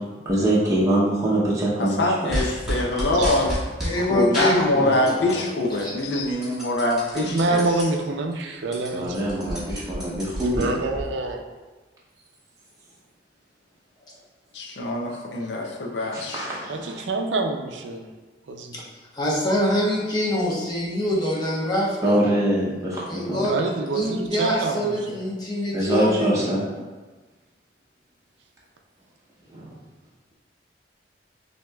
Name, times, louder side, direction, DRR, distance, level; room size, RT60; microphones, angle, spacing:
voice 1, 0.3-2.1 2.4-2.5 8.9-10.7 16.1-17.0 22.0-23.5 25.7-26.6 29.5-29.7, right 1 dB, 20° right, -7 dB, 0.7 m, -23 dB
voice 2, 1.8-3.5 4.0-7.7 14.5-16.5, left 1 dB, 70° left, 0 dB, 0.6 m, -24 dB
sound 1, 2.3-4.0 4.3-5.5 5.8-7.8 8.3-8.4 8.6-11.0, equal, 5° right, 1.5 m, -30 dB
voice 3, 3.8-5.4 5.8-5.9 18.7-18.8 19.1-22.3 23.1-23.6 23.9-26.6, equal, 25° left, -5 dB, 0.9 m, -25 dB
voice 4, 7.1-9.3 10.5-11.4 16.7-18.1 18.5-18.8 23.5-25.2, right 2 dB, 90° right, 3 dB, 0.5 m, -26 dB
6.0 x 2.8 x 2.3 m, 1.3 s
head